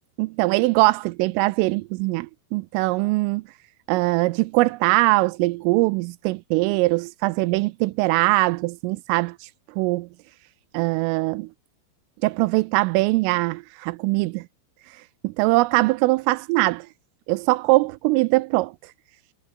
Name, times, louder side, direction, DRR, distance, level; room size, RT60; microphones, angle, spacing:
voice 1, 0.2-3.4 3.9-9.3 9.8-10.1 10.7-11.5 12.2-14.4 15.2-16.9 17.3-18.7, right 22 dB, 85° right, 3.2 m, -21 dB
omnidirectional pair, 5.8 m